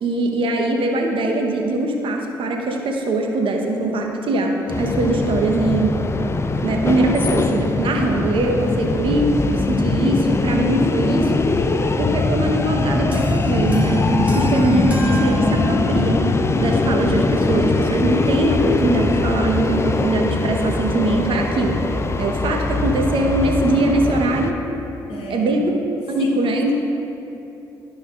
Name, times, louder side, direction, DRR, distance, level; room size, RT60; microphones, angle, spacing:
voice 1, 0.0-5.9 6.6-9.2 9.5-11.3 12.0-16.2 16.6-21.8 22.2-24.5 25.3-25.8 26.1-26.7, right 2 dB, 55° right, 2 dB, 1.1 m, -21 dB
sound 1, 4.7-24.5, left 3 dB, 25° left, 0.5 m, -21 dB
voice 2, 8.7-9.1 25.1-25.5 26.2-26.4, left 1 dB, 65° left, -1 dB, 1.6 m, -33 dB
sound 2, 13.1-16.3, right 1 dB, 15° right, 1.6 m, -34 dB
12.5 x 5.7 x 2.5 m, 2.9 s
hypercardioid pair, 45°, 10 cm